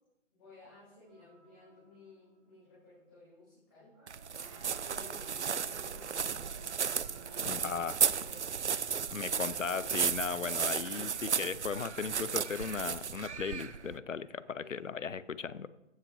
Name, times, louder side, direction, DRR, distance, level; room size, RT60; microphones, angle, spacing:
voice 1, 0.3-3.9 4.8-6.7 7.2-7.6 8.0-9.1 14.6-15.0, left 2 dB, 15° left, -12 dB, 4.4 m, -56 dB
sound 1, 1.0-2.7 3.9-11.8 13.0-14.6, right 2 dB, ahead, 0.9 m, -63 dB
sound 2, 4.1-14.0, right 7 dB, 65° right, 0.6 m, -34 dB
sound 3, 4.3-14.8, right 2 dB, 25° right, 2.3 m, -58 dB
voice 2, 7.4-8.0 9.1-15.7, left 6 dB, 75° left, 16 dB, 0.8 m, -37 dB
15.5 x 9.2 x 3.1 m, 0.94 s
figure-of-eight pair, 165°, 38 cm